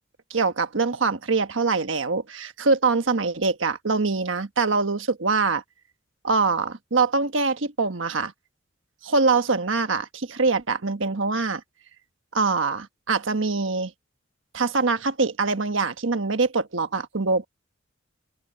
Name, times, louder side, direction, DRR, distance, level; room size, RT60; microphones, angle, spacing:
voice 1, 0.3-5.6 6.2-8.3 9.0-11.6 12.3-13.9 14.5-17.5, right 4 dB, 70° right, 1.3 m, -24 dB
open air
head